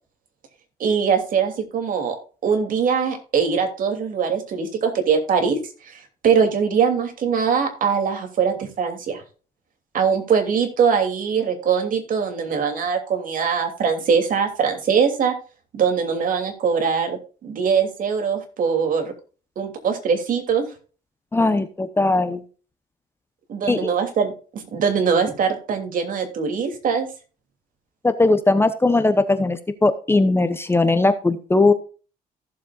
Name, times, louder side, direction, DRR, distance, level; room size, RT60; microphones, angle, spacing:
voice 1, 0.8-2.1 2.4-5.6 5.9-9.2 9.9-15.3 15.7-19.1 19.6-20.7 23.5-27.1, right 6 dB, 55° right, 5 dB, 2.9 m, -22 dB
voice 2, 21.3-22.4 23.7-23.9 28.0-31.7, left 2 dB, 15° left, 10 dB, 0.9 m, -19 dB
15.5 x 7.5 x 2.5 m, 0.36 s
cardioid pair, 110°, 17 cm